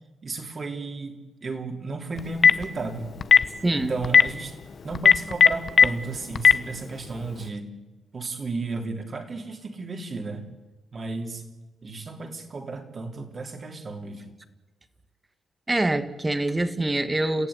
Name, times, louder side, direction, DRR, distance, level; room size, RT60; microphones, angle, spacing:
voice 1, 0.2-3.1 3.7-4.6 4.8-7.7 8.1-10.4 10.9-11.4 11.8-14.3, right 3 dB, 35° right, 4 dB, 3.3 m, -33 dB
Telephone, 2.2-2.6 3.2-3.4 4.0-4.2 4.9-5.9 6.4-6.5, left 6 dB, 45° left, 1.0 m, -13 dB
voice 2, 15.7-17.5, right 2 dB, 15° right, 11 dB, 1.6 m, -25 dB
29.5 x 15.0 x 9.7 m, 1.2 s
cardioid pair, 125°, 0 cm